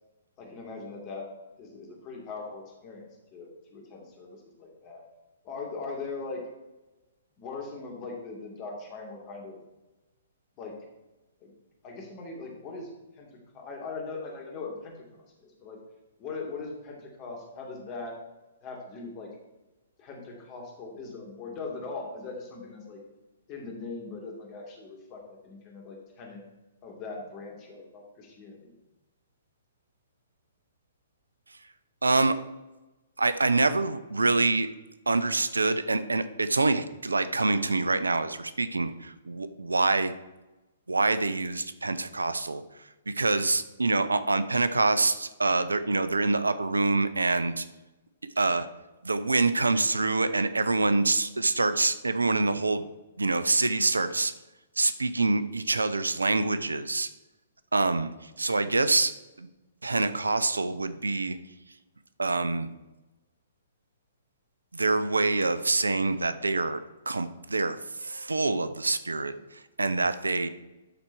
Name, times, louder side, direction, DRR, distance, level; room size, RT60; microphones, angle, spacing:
voice 1, 0.4-1.3 1.6-5.0 5.4-6.4 7.4-9.6 10.6-10.8 11.4-11.5 11.8-13.3 13.5-15.0 15.4-15.8 16.2-18.1 18.6-19.3 20.0-23.0 23.5-26.4 26.8-28.7, left 3 dB, 30° left, 0 dB, 2.6 m, -40 dB
voice 2, 32.0-32.4 33.2-34.7 35.1-40.1 40.9-47.7 48.4-48.7 49.0-52.8 53.2-54.3 54.8-57.1 57.7-59.1 59.4-59.5 59.8-61.4 62.2-62.7 64.7-66.8 67.1-70.5, right 3 dB, 80° right, 12 dB, 0.6 m, -26 dB
12.5 x 4.4 x 4.5 m, 1.0 s
figure-of-eight pair, 120°, 0 cm